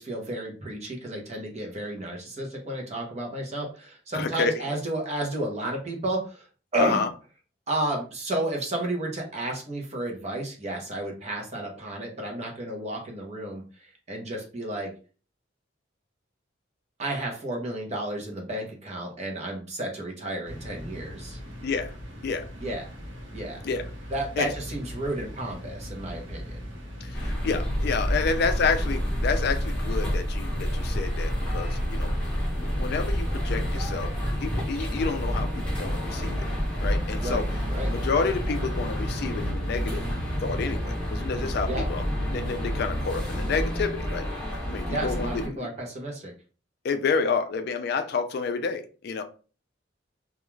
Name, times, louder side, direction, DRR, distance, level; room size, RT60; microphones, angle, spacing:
voice 1, 0.0-6.5 6.7-7.0 7.7-14.9 17.0-21.4 22.6-22.8 23.3-23.6 24.1-26.6 37.2-37.9 41.7-41.8 44.7-46.3, right 1 dB, 35° right, 1 dB, 0.7 m, -32 dB
voice 2, 4.1-4.5 6.8-7.1 21.6-22.0 22.2-22.5 23.6-23.9 24.4-24.5 27.0-32.1 32.6-34.1 34.4-36.4 36.8-37.5 37.9-40.1 40.4-42.0 42.3-45.7 46.8-49.2, left 4 dB, 55° left, 7 dB, 0.3 m, -29 dB
sound 1, 20.4-38.4, equal, 75° right, 0.9 m, -40 dB
sound 2, 27.1-45.5, equal, 5° left, 0.9 m, -29 dB
2.4 x 2.3 x 3.0 m, 0.37 s
head